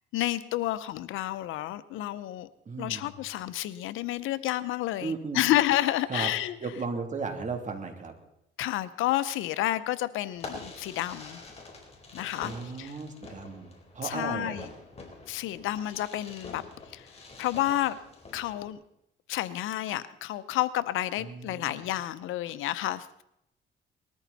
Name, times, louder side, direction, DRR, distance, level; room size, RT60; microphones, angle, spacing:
voice 1, 0.1-2.5 2.8-6.5 8.6-11.4 12.1-12.9 14.0-14.6 15.3-17.1 17.4-18.0 18.3-18.8 19.3-23.2, left 14 dB, 90° left, 15 dB, 0.8 m, -30 dB
voice 2, 2.6-3.1 5.0-5.4 6.1-6.3 6.6-8.1 12.4-14.7 21.2-21.8, right 4 dB, 40° right, 4 dB, 2.9 m, -35 dB
Fireworks, 10.3-18.7, left 3 dB, 30° left, 4.1 m, -46 dB
20.0 x 13.5 x 4.1 m, 0.79 s
cardioid pair, 90°, 20 cm